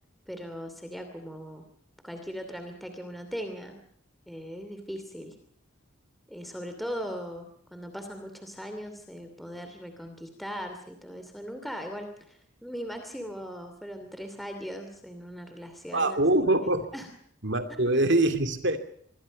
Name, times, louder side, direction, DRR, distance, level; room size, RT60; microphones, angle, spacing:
voice 1, 0.3-1.6 2.0-3.8 4.3-5.3 6.3-16.2 16.9-17.1 17.7-18.0, equal, ahead, 6 dB, 2.7 m, -39 dB
voice 2, 15.9-16.9 17.4-18.8, right 2 dB, 55° right, 8 dB, 2.7 m, -24 dB
26.5 x 22.0 x 5.3 m, 0.65 s
head